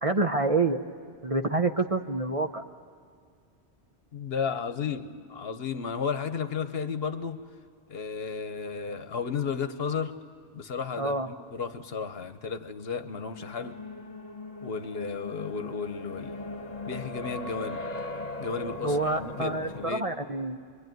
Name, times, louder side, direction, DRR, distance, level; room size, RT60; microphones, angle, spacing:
voice 1, 0.0-0.8 1.2-2.6 11.0-11.3 18.8-20.6, right 2 dB, 35° right, 5 dB, 0.8 m, -27 dB
voice 2, 4.1-7.4 7.9-10.2 10.5-13.8 14.6-16.5 16.9-17.8 18.4-20.0, left 6 dB, 60° left, 10 dB, 1.2 m, -33 dB
sound 1, 12.6-19.9, left 2 dB, 35° left, 1.3 m, -39 dB
27.5 x 23.0 x 9.3 m, 2.1 s
omnidirectional pair, 1.2 m